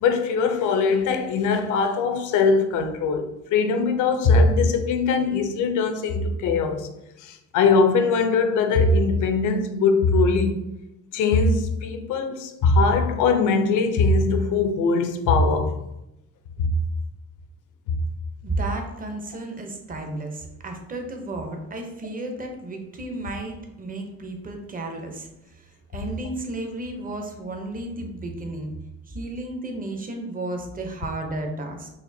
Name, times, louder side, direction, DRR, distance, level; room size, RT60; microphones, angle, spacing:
voice 1, 0.0-6.9 7.2-10.6 11.1-15.8 16.6-16.7 17.9-18.0, left 4 dB, 80° left, 0.5 m, -21 dB
voice 2, 18.4-28.7 29.1-31.9, right 2 dB, 30° right, 0.7 m, -33 dB
4.2 x 2.5 x 2.7 m
cardioid pair, 90°, 30 cm